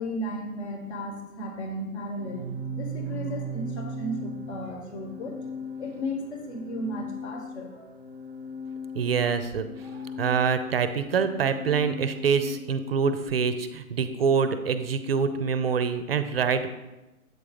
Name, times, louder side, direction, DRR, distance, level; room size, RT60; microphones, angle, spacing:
voice 1, 0.0-7.9 9.8-10.2, equal, 50° left, 4 dB, 1.3 m, -35 dB
Organ, 2.2-12.9, equal, 15° right, 0.8 m, -38 dB
voice 2, 8.9-9.7 10.2-16.7, right 6 dB, 45° right, 10 dB, 0.5 m, -25 dB
7.9 x 3.7 x 5.0 m, 1.0 s
hypercardioid pair, 145°, 43 cm